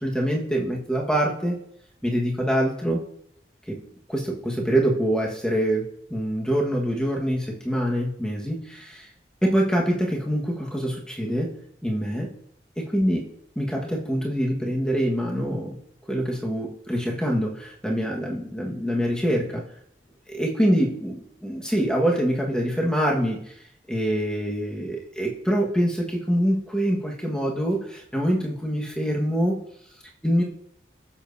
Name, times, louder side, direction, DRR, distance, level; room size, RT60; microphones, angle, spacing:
voice 1, 0.0-1.6 2.0-3.0 3.7-3.8 4.1-9.0 9.4-11.5 11.8-12.3 12.8-13.3 13.5-15.8 16.1-19.6 20.3-23.4 23.9-29.5 30.2-30.4, equal, 5° left, -2 dB, 1.5 m, -25 dB
19.0 x 7.3 x 2.7 m, 0.71 s
head